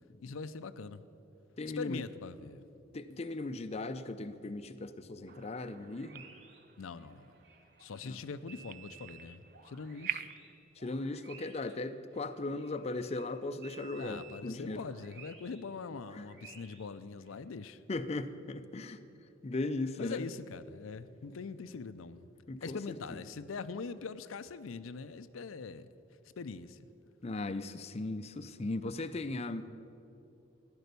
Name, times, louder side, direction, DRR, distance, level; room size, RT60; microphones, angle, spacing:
voice 1, 0.2-1.0 1.8-2.6 6.8-7.4 7.8-10.3 14.0-17.8 20.0-22.3 22.6-25.9 26.4-26.9, left 4 dB, 90° left, 0.5 m, -43 dB
voice 2, 1.6-2.0 2.9-6.2 8.0-8.2 10.8-14.9 16.1-16.3 17.9-19.0 19.4-20.3 22.5-23.2 27.2-29.7, left 2 dB, 30° left, 0.5 m, -38 dB
sound 1, 5.3-10.6, right 10 dB, 45° right, 0.4 m, -46 dB
sound 2, 5.9-8.2 8.5-13.3 13.6-17.4, right 6 dB, 60° right, 2.0 m, -56 dB
13.5 x 10.5 x 6.8 m
head